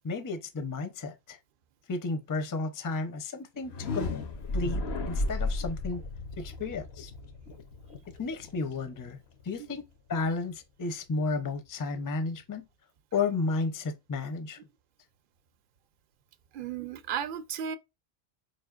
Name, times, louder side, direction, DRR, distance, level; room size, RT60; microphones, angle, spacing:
voice 1, 0.0-1.4 1.9-4.1 4.5-6.0 6.4-7.1 8.2-9.2 9.5-9.8 10.1-12.7 13.1-14.6, left 3 dB, 30° left, 0.4 m, -32 dB
sound 1, 3.6-9.4, left 2 dB, 85° left, 1.1 m, -34 dB
voice 2, 16.5-17.8, right 8 dB, 60° right, 0.7 m, -34 dB
4.2 x 3.3 x 2.4 m
omnidirectional pair, 1.1 m